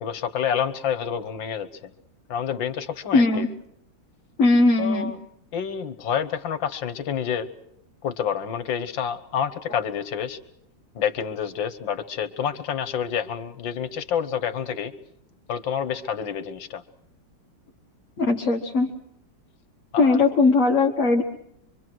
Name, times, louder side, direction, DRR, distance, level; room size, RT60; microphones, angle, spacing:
voice 1, 0.0-1.7 2.3-3.5 4.8-5.2 5.5-7.5 8.0-10.4 11.0-14.9 15.5-16.8 19.9-20.2, left 8 dB, 85° left, 13 dB, 2.0 m, -28 dB
voice 2, 3.1-3.5 4.4-5.1 18.2-18.9 20.0-21.2, left 3 dB, 45° left, -1 dB, 1.9 m, -19 dB
25.5 x 25.0 x 6.2 m, 0.74 s
omnidirectional pair, 2.0 m